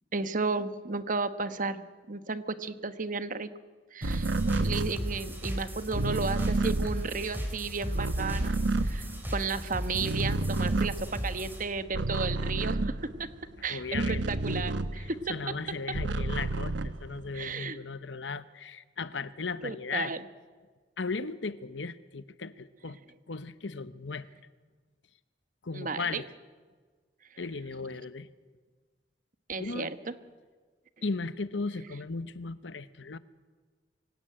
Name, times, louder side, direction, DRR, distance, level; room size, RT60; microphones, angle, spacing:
voice 1, 0.1-3.5 3.9-4.3 4.6-12.9 13.6-15.2 17.3-17.8 19.6-20.2 25.7-26.2 29.5-29.9, right 4 dB, 45° right, 11 dB, 1.2 m, -33 dB
sound 1, 4.0-11.6, equal, 10° right, 4.2 m, -36 dB
sound 2, 4.0-9.6 9.9-15.3 15.7-17.5, right 2 dB, 90° right, 0.9 m, -31 dB
voice 2, 13.7-14.6 15.0-20.2 21.0-23.0 23.3-24.3 25.6-26.3 27.4-28.3 29.6-29.9 31.0-33.2, left 4 dB, 85° left, 14 dB, 0.9 m, -36 dB
24.5 x 17.0 x 9.0 m, 1.4 s
head